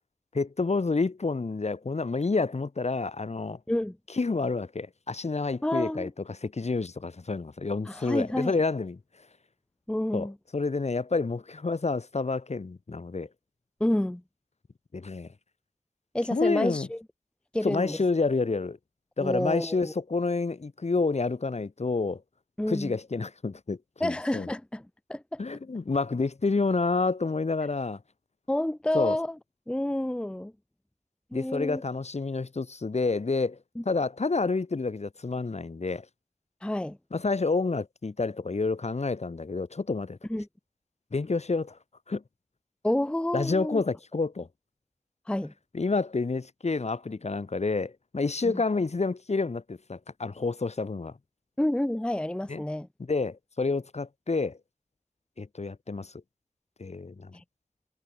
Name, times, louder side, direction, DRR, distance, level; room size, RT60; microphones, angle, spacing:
voice 1, 0.3-3.6 4.1-9.0 10.1-13.3 14.9-15.3 16.3-16.9 17.6-18.8 19.2-22.2 22.7-24.5 25.4-28.0 28.9-29.2 31.3-33.6 33.8-36.1 37.1-40.2 41.1-41.8 42.1-42.2 43.3-44.5 45.7-51.2 52.5-52.6 53.1-54.6 55.4-56.1 56.8-57.4, left 3 dB, 55° left, 1.2 m, -29 dB
voice 2, 5.6-6.1 7.9-8.6 9.9-10.3 13.8-14.2 16.1-17.0 17.5-18.0 19.2-19.9 22.6-22.9 24.0-24.8 25.1-25.4 28.5-29.4 29.7-30.5 31.3-31.8 33.8-33.9 36.6-37.0 40.3-40.5 42.8-43.8 45.3-45.5 48.4-48.6 51.6-52.9 57.3-57.4, left 1 dB, 5° left, 0.5 m, -29 dB
wide cardioid pair, 65°, 13 cm